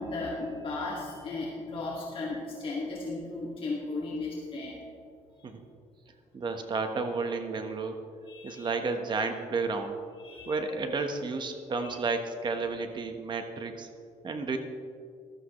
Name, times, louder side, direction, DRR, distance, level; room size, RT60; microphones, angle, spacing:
voice 1, 0.0-4.8 8.3-8.7 10.2-10.5 11.8-12.0, left 3 dB, 45° left, -4 dB, 2.1 m, -35 dB
voice 2, 6.3-8.0 8.4-10.0 10.5-13.9 14.2-14.6, right 4 dB, 35° right, 6 dB, 1.2 m, -32 dB
14.5 x 12.5 x 3.2 m, 2.3 s
cardioid pair, 125°, 13 cm